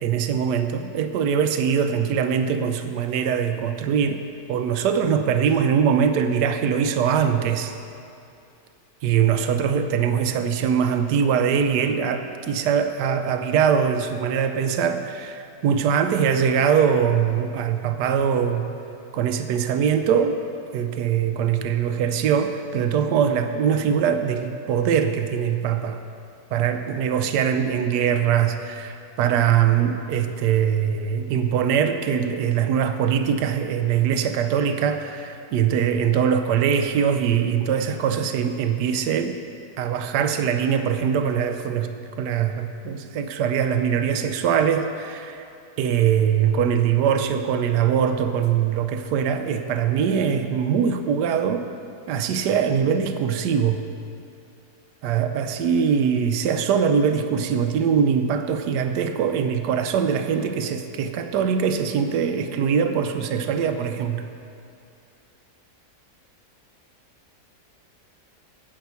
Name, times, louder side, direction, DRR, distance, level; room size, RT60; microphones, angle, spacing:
voice 1, 0.0-4.2 4.5-7.7 9.0-18.7 19.1-20.4 20.7-26.0 26.5-39.4 39.8-45.5 45.8-51.7 52.1-53.8 55.0-64.3, right 7 dB, 90° right, 8 dB, 1.2 m, -22 dB
10.5 x 8.4 x 6.9 m, 2.6 s
omnidirectional pair, 1.7 m